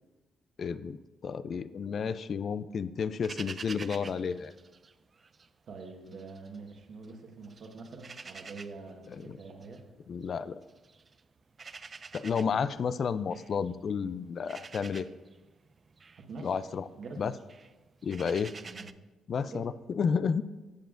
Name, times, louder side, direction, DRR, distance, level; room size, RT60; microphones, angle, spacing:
voice 1, 0.6-1.0 1.2-4.5 9.2-9.4 10.1-10.6 12.1-15.1 16.4-16.9 17.2-17.3 18.0-18.5 19.3-20.4, left 6 dB, 50° left, 15 dB, 0.4 m, -31 dB
sound 1, 3.2-5.5 5.8-7.1 7.4-18.9, right 4 dB, 35° right, 0.3 m, -48 dB
voice 2, 5.7-9.8 12.4-12.6 16.2-16.6 17.0-17.3 18.6-18.9 19.4-19.8, right 4 dB, 60° right, 3 dB, 1.4 m, -45 dB
15.0 x 6.9 x 2.5 m, 1.2 s
cardioid pair, 90°, 0 cm